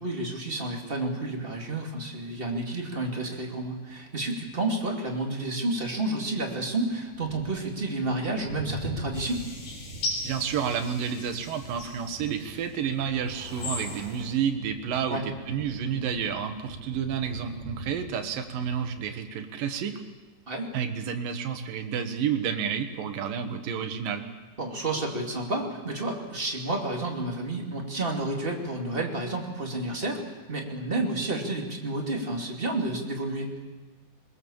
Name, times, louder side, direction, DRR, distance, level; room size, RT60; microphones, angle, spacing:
voice 1, 0.0-9.4 15.1-15.2 20.5-20.7 24.6-30.2 30.5-33.6, right 2 dB, 20° right, 1 dB, 2.2 m, -30 dB
sound 1, 6.7-19.2, right 2 dB, 45° right, 2.6 m, -44 dB
sound 2, 9.1-12.6 13.2-14.3, left 2 dB, 85° left, 5.6 m, -38 dB
voice 2, 10.2-15.2 15.5-20.0 20.7-24.3, right 7 dB, 75° right, 6 dB, 3.1 m, -30 dB
21.5 x 21.5 x 7.2 m, 1.2 s
omnidirectional pair, 4.2 m